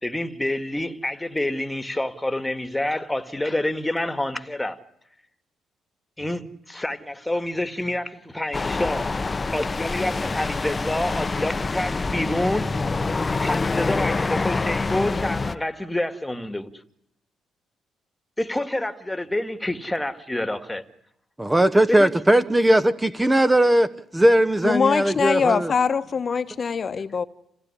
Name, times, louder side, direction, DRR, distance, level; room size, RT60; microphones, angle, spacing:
voice 1, 0.0-4.8 6.2-9.1 9.5-12.7 13.4-16.7 18.4-20.8 21.9-22.1, left 1 dB, 10° left, 2.0 m, -27 dB
sound 1, 8.5-15.5, left 3 dB, 25° left, 1.0 m, -26 dB
voice 2, 21.4-25.7, right 1 dB, 10° right, 1.0 m, -19 dB
voice 3, 24.6-27.2, left 6 dB, 40° left, 1.2 m, -23 dB
28.5 x 16.5 x 9.9 m
cardioid pair, 90°, 0 cm